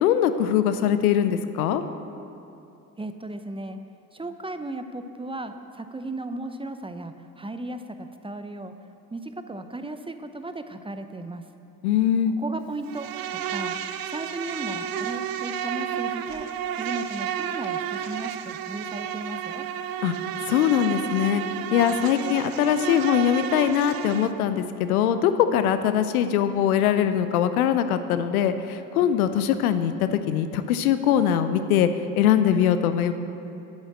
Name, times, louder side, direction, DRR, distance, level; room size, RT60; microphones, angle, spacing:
voice 1, 0.0-1.8 11.8-12.4 20.0-20.1 20.5-21.4 21.7-31.9 32.2-33.1, left 9 dB, 90° left, 11 dB, 0.5 m, -22 dB
voice 2, 3.0-3.8 4.1-8.7 9.1-11.4 12.3-13.8 14.1-19.7, right 2 dB, 10° right, 9 dB, 0.7 m, -36 dB
Insect, 12.9-24.3, right 9 dB, 55° right, 0.7 m, -31 dB
8.7 x 7.2 x 7.9 m, 2.8 s
hypercardioid pair, 45°, 42 cm